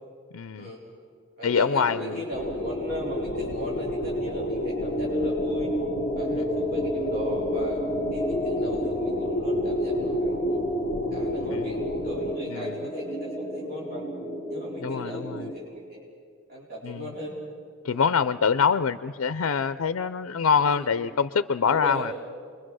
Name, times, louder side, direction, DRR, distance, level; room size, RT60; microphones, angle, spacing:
voice 1, 0.3-0.7 1.4-2.2 6.3-6.5 11.5-11.8 12.5-12.8 14.8-15.5 16.8-17.1 17.8-22.1, left 6 dB, 90° left, 13 dB, 0.5 m, -25 dB
sound 1, 1.4-15.6, left 1 dB, 20° right, 2.6 m, -30 dB
voice 2, 1.4-5.7 6.1-7.8 8.1-10.6 11.1-14.1 14.5-16.1 16.5-17.3 17.9-18.2 20.6-20.8 21.6-22.1, equal, 45° right, -5 dB, 4.5 m, -37 dB
sound 2, 2.3-12.4, left 1 dB, 45° left, 0.7 m, -34 dB
27.5 x 22.5 x 6.3 m, 2.2 s
head